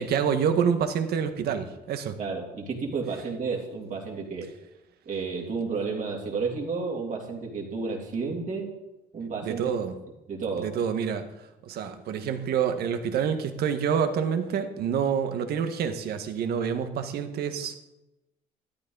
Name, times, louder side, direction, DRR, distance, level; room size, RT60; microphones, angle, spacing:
voice 1, 0.0-2.2 9.4-9.9 10.6-11.2 11.6-17.8, right 7 dB, 70° right, 7 dB, 1.6 m, -27 dB
voice 2, 2.2-4.5 5.0-8.7 9.1-9.6 10.3-10.7, right 4 dB, 50° right, -1 dB, 3.1 m, -31 dB
13.5 x 12.0 x 4.1 m, 0.95 s
cardioid pair, 110°, 17 cm